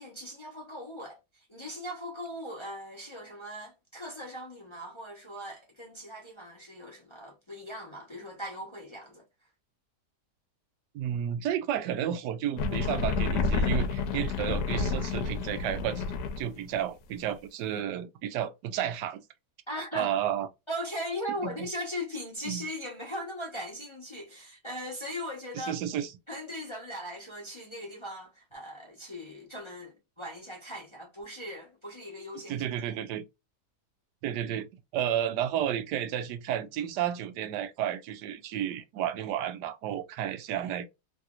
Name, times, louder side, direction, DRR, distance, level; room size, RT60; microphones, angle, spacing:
voice 1, 0.0-9.2 19.7-20.1 20.7-25.8 26.3-32.7, equal, 25° left, 0.7 m, -39 dB
voice 2, 10.9-16.0 16.4-19.2 19.9-20.5 21.4-21.7 22.4-22.6 25.5-26.1 32.5-33.2 34.2-34.7 34.9-40.9, right 10 dB, 80° right, 1.2 m, -32 dB
sound 1, 12.6-16.5, left 4 dB, 85° left, 1.3 m, -29 dB
3.3 x 2.8 x 2.3 m
omnidirectional pair, 1.8 m